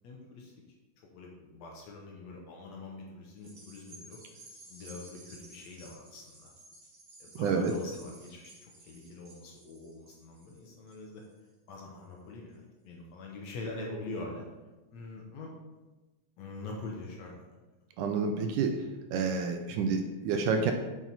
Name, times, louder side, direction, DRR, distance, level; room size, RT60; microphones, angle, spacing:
voice 1, 0.0-0.5 1.1-4.2 4.7-6.5 7.2-11.2 11.7-14.5 14.9-15.5 16.4-17.6, left 2 dB, 70° left, -1 dB, 1.9 m, -44 dB
sound 1, 3.4-12.0 12.5-12.6, right 2 dB, 45° right, 1.6 m, -54 dB
voice 2, 7.4-7.7 18.0-18.8 19.1-20.7, right 5 dB, 80° right, 5 dB, 2.0 m, -29 dB
7.0 x 5.8 x 4.1 m, 1.1 s
omnidirectional pair, 3.8 m